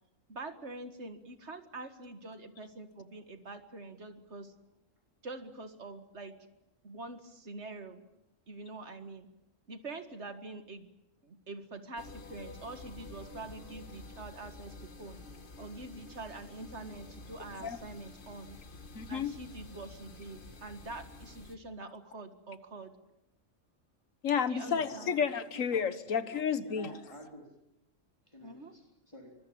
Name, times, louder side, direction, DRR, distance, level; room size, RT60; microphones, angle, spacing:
voice 1, 0.3-4.5 5.2-6.4 6.8-8.0 8.5-9.3 9.7-10.9 11.2-15.2 15.6-18.6 19.1-22.9 24.5-25.1 28.4-28.7, right 2 dB, 60° right, 9 dB, 2.1 m, -45 dB
sound 1, 12.0-21.6, left 2 dB, 40° left, 1.9 m, -50 dB
voice 2, 19.0-19.3 24.2-26.9, left 7 dB, 90° left, 13 dB, 1.7 m, -31 dB
voice 3, 26.6-27.5 28.3-29.3, equal, 25° left, 1 dB, 3.8 m, -49 dB
24.5 x 20.5 x 8.7 m, 0.87 s
omnidirectional pair, 1.3 m